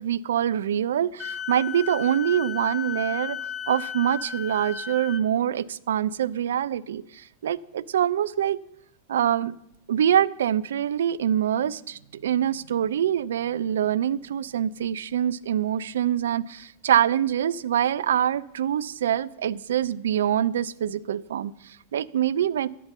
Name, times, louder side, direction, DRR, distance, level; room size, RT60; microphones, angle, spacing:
voice 1, 0.0-3.4 3.7-8.6 9.1-9.5 9.9-22.7, right 10 dB, 60° right, 18 dB, 0.4 m, -25 dB
Wind instrument woodwind instrument, 1.2-5.2, left 8 dB, 15° left, 0.6 m, -34 dB
12.0 x 6.8 x 7.5 m, 0.78 s
figure-of-eight pair, 90°, 0 cm